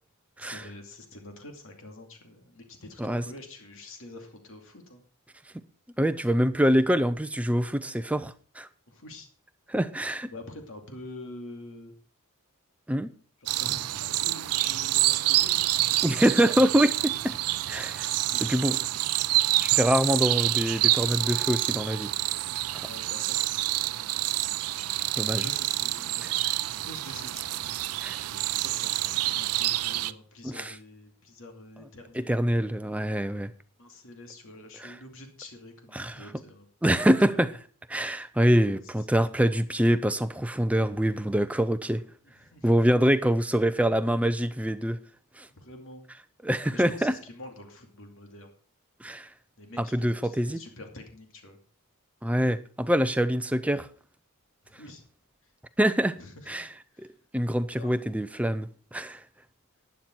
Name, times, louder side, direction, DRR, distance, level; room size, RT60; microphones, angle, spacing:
voice 1, 0.4-5.0 8.9-9.3 10.3-11.9 13.4-16.2 18.3-18.8 22.8-23.8 25.3-32.6 33.8-36.7 37.0-37.4 38.6-38.8 39.2-39.5 42.4-42.7 45.6-46.0 46.7-48.5 49.6-51.6 54.8-55.0 56.2-56.7 56.9-57.1 57.6-58.1, left 2 dB, 60° left, 2.5 m, -46 dB
voice 2, 6.0-8.7 9.7-10.3 12.9-13.1 16.0-17.4 17.7-18.1 18.5-18.8 19.6-22.1 22.7-22.9 25.2-25.5 28.0-28.2 30.4-30.8 32.1-33.5 34.8-35.0 35.9-36.3 36.8-37.6 37.9-42.0 42.6-45.0 45.4-45.5 46.4-47.1 49.0-49.3 49.8-50.6 52.2-53.9 55.8-56.2 56.5-56.7 57.0-57.1 57.3-59.2, equal, 5° right, 0.6 m, -25 dB
sound 1, 13.5-30.1, right 16 dB, 80° right, 0.5 m, -27 dB
11.5 x 9.4 x 4.5 m
head